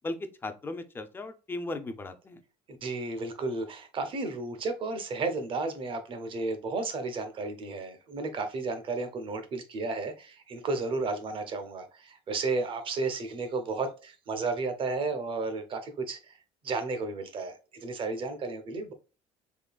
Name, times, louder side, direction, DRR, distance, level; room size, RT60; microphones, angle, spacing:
voice 1, 0.4-2.4, left 2 dB, 15° left, 0.5 m, -36 dB
voice 2, 2.8-16.4 16.6-18.9, right 3 dB, 40° right, 0.8 m, -33 dB
3.7 x 3.2 x 2.3 m
cardioid pair, 145°, 13 cm